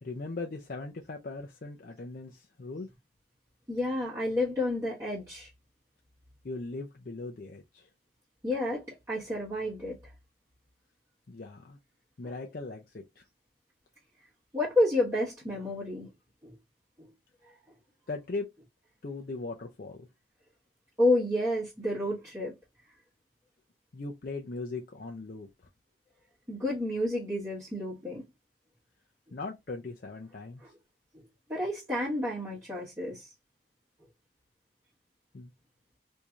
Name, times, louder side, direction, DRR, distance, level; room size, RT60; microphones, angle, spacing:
voice 1, 0.0-2.9 6.4-7.9 11.3-11.8 12.2-13.2 18.1-18.5 19.0-20.1 23.9-25.5 29.3-30.6 35.3-35.5, left 3 dB, 50° left, 0.5 m, -39 dB
voice 2, 3.7-5.5 8.4-10.0 14.5-16.1 16.4-16.5 17.0-17.1 17.4-17.5 21.0-22.5 26.5-28.2 30.6-30.7 31.5-33.3, left 1 dB, 15° right, 1.3 m, -30 dB
4.5 x 2.7 x 2.4 m
head